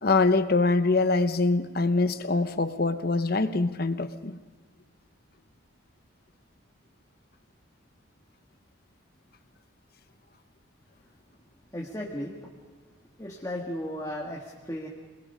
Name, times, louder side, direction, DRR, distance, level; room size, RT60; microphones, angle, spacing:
voice 1, 0.0-4.4, left 3 dB, 45° left, 10 dB, 0.9 m, -24 dB
voice 2, 11.7-12.5 13.2-14.9, equal, 15° left, -1 dB, 1.6 m, -35 dB
27.0 x 20.5 x 5.5 m, 1.4 s
head